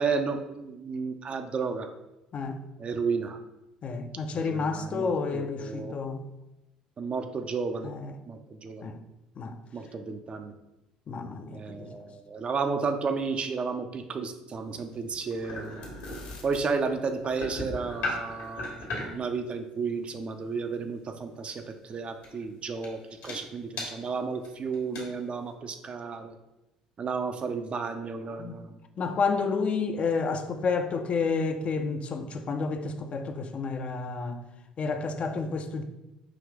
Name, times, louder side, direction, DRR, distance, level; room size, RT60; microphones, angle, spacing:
voice 1, 0.0-1.9 2.8-3.4 4.3-6.0 7.0-7.9 8.3-8.9 9.7-10.5 11.5-15.9 16.4-26.4 27.0-28.7, right 5 dB, 35° right, 0.4 m, -32 dB
voice 2, 3.8-6.3 7.8-8.2 8.8-9.0 9.4-9.6 11.1-11.9 28.4-28.7 29.0-34.5 34.8-35.8, left 4 dB, 40° left, 0.4 m, -30 dB
sound 1, 14.6-19.3 21.5-21.7 22.2-22.4 22.8-22.9 23.2-23.3 23.8-23.9 24.4-24.5 24.7-25.0, left 2 dB, 65° left, 1.2 m, -37 dB
4.8 x 2.8 x 3.5 m
figure-of-eight pair, 55°, 3 cm